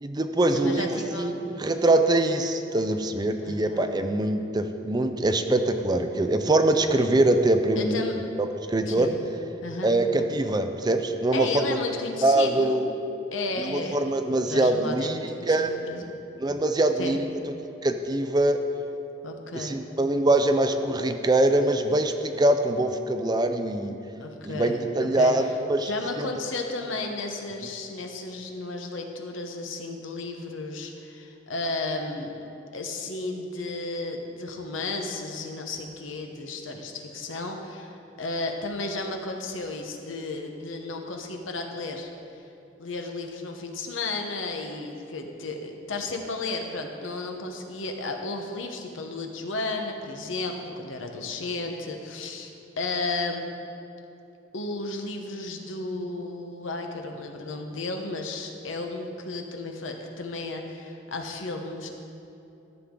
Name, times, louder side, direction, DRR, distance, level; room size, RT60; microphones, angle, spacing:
voice 1, 0.0-8.0 8.7-9.1 9.8-11.8 12.2-12.9 13.6-15.2 15.5-15.8 16.4-17.5 17.8-18.6 19.5-24.0 24.4-25.9 26.2-26.3, right 2 dB, 20° right, 7 dB, 0.4 m, -23 dB
voice 2, 0.5-1.5 3.4-3.9 7.8-8.1 8.8-9.1 9.6-9.9 11.3-12.9 13.3-14.0 14.4-16.2 17.0-17.1 19.2-19.8 24.2-25.3 25.8-32.3 32.7-42.1 42.8-52.5 52.8-53.5 54.5-61.9, left 3 dB, 90° left, 3 dB, 1.0 m, -33 dB
13.5 x 7.2 x 3.7 m, 2.9 s
head